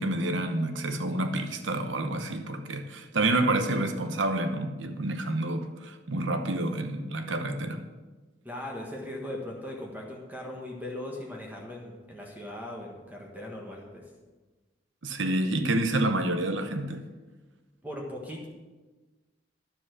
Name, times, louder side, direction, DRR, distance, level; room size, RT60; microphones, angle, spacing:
voice 1, 0.0-7.8 15.0-17.0, right 2 dB, 85° right, 0.9 m, -28 dB
voice 2, 8.4-14.0 17.8-18.5, left 1 dB, 10° right, 1.4 m, -39 dB
10.5 x 7.5 x 6.3 m
head